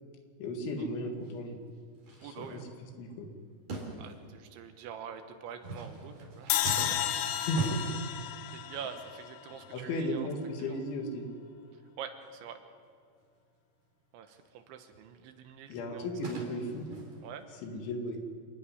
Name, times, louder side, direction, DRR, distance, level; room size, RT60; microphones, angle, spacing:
voice 1, 0.4-1.6 2.2-2.6 3.0-3.3 7.5-7.8 9.7-11.3 15.7-16.9 17.6-18.2, left 1 dB, 65° left, 4 dB, 4.2 m, -35 dB
sound 1, 1.2-1.3 2.0-3.0 3.7-4.6 5.5-8.7 9.0-9.2 9.5-9.7 10.1-10.2 10.6-10.8 11.2-11.3 11.7-11.8 12.2-12.3 14.3-14.4 14.9-17.4, right 2 dB, 35° right, 4.6 m, -42 dB
voice 2, 2.2-2.7 4.0-6.6 8.5-10.3 10.6-10.8 12.0-12.6 14.1-16.1 17.2-17.4, right 7 dB, 75° right, 7 dB, 3.1 m, -45 dB
sound 2, 6.5-9.7, left 11 dB, 90° left, 2.4 m, -32 dB
27.0 x 11.0 x 9.8 m, 2.2 s
omnidirectional pair, 6.0 m